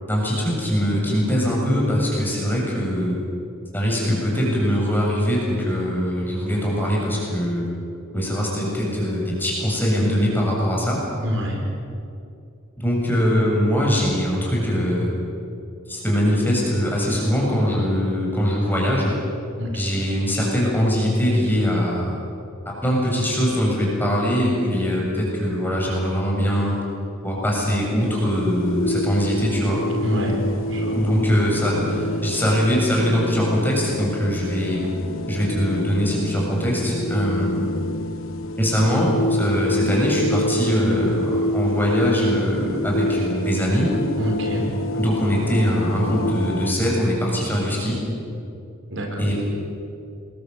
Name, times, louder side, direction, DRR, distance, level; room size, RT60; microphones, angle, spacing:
voice 1, 0.1-3.2 3.7-7.7 8.1-11.0 12.8-15.1 15.9-19.1 19.7-22.2 22.8-26.8 27.2-29.8 30.9-34.8 35.3-37.6 38.6-43.9 44.9-48.0 49.2-49.3, equal, 10° left, -3 dB, 7.3 m, -22 dB
voice 2, 11.2-11.6 19.6-20.0 30.0-30.4 30.7-31.0 44.2-44.7 48.9-49.2, equal, 60° right, 0 dB, 5.0 m, -26 dB
sound 1, 28.0-46.7, left 1 dB, 80° left, 1.4 m, -28 dB
27.0 x 21.5 x 8.0 m, 2.6 s
head